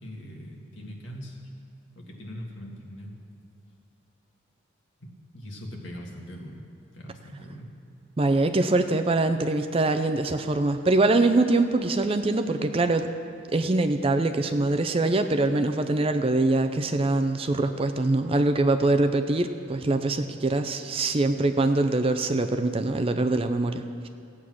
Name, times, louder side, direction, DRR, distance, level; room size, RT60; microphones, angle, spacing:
voice 1, 0.0-1.4 2.0-3.1 5.0-6.7 6.9-7.7, equal, 65° left, -1 dB, 1.9 m, -41 dB
voice 2, 8.2-13.1 13.5-24.1, right 2 dB, 25° right, 8 dB, 0.4 m, -23 dB
15.5 x 8.6 x 6.2 m, 2.4 s
head